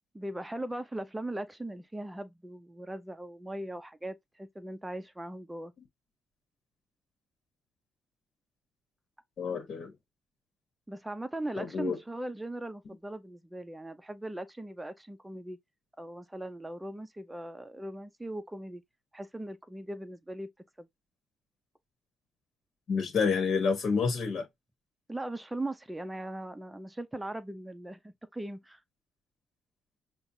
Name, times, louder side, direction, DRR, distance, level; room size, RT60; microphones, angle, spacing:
voice 1, 0.1-5.7 10.9-15.6 16.0-18.8 19.1-20.5 20.8-20.9 25.1-28.8, right 1 dB, 10° right, 0.6 m, -39 dB
voice 2, 9.4-9.9 11.6-12.0 22.9-24.5, left 5 dB, 55° left, 1.1 m, -29 dB
5.6 x 2.1 x 2.7 m
cardioid pair, 90°, 0 cm